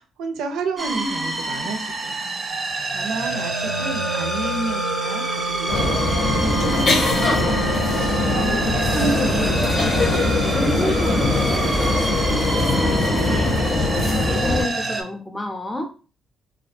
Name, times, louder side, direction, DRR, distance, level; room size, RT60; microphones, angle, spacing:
voice 1, 0.0-2.2 2.9-7.8, right 4 dB, 90° right, 6 dB, 0.4 m, -32 dB
sound 1, 0.8-15.0, right 2 dB, 35° right, 0.5 m, -27 dB
Wind instrument woodwind instrument, 3.2-11.1, right 1 dB, 90° left, 0.3 m, -30 dB
sound 2, 5.7-14.6, left 2 dB, 60° left, 0.8 m, -21 dB
voice 2, 8.2-15.9, left 1 dB, 15° left, 3 dB, 0.6 m, -30 dB
2.3 x 2.2 x 2.5 m, 0.35 s
cardioid pair, 90°, 0 cm